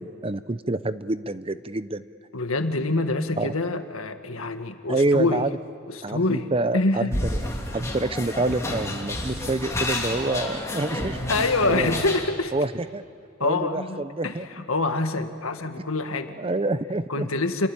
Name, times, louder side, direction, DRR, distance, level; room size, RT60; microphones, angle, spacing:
voice 1, 0.0-2.0 3.4-3.5 4.9-5.6 6.0-7.4 7.7-11.2 11.7-12.0 12.5-13.0 13.4-14.5 16.4-17.3, right 2 dB, 25° right, 14 dB, 0.6 m, -27 dB
voice 2, 2.3-5.4 5.9-6.5 6.7-7.1 11.3-12.5 13.4-16.4 17.1-17.7, left 2 dB, 80° left, 7 dB, 1.8 m, -26 dB
sound 1, 7.1-12.2, left 1 dB, 15° left, 3.0 m, -30 dB
28.0 x 23.0 x 8.9 m, 2.4 s
head